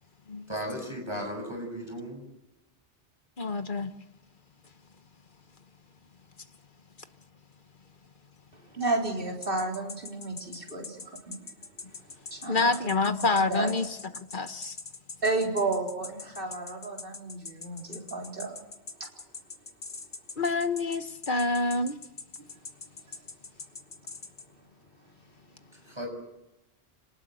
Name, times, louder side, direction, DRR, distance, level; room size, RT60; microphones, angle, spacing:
voice 1, 0.5-2.2 25.9-26.1, equal, 25° right, 2 dB, 7.2 m, -35 dB
voice 2, 3.4-3.9 12.5-13.9 14.2-14.8 20.4-22.0, left 3 dB, 50° left, 10 dB, 1.4 m, -27 dB
voice 3, 8.7-11.4 12.3-12.9 13.2-13.7 15.2-18.6, right 3 dB, 55° right, 0 dB, 4.2 m, -32 dB
sound 1, 9.4-24.4, left 4 dB, 90° left, 2.1 m, -42 dB
26.5 x 19.0 x 7.8 m, 0.98 s
omnidirectional pair, 1.1 m